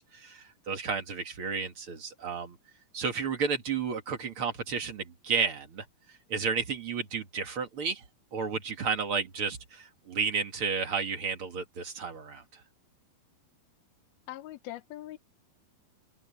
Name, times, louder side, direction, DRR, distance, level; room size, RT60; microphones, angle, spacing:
voice 1, 0.0-2.6 2.9-5.9 6.3-8.0 8.3-12.6, right 5 dB, 45° right, 1.9 m, -32 dB
voice 2, 14.3-15.2, left 14 dB, 75° left, 3.0 m, -41 dB
open air
omnidirectional pair, 4.6 m